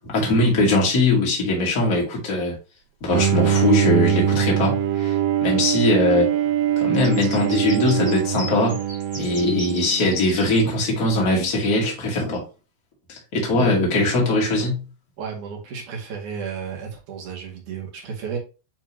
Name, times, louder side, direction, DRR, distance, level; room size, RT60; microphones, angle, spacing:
voice 1, 0.1-2.5 3.0-5.2 5.4-6.3 6.8-8.8 9.1-12.4 13.1-14.8, left 2 dB, 30° left, 2.0 m, -21 dB
Bowed string instrument, 3.1-10.3, right 9 dB, 80° right, 2.1 m, -23 dB
sound 1, 6.9-10.6, equal, 10° left, 2.2 m, -37 dB
voice 2, 15.2-18.4, right 6 dB, 55° right, 3.2 m, -33 dB
9.0 x 3.5 x 3.0 m
omnidirectional pair, 4.5 m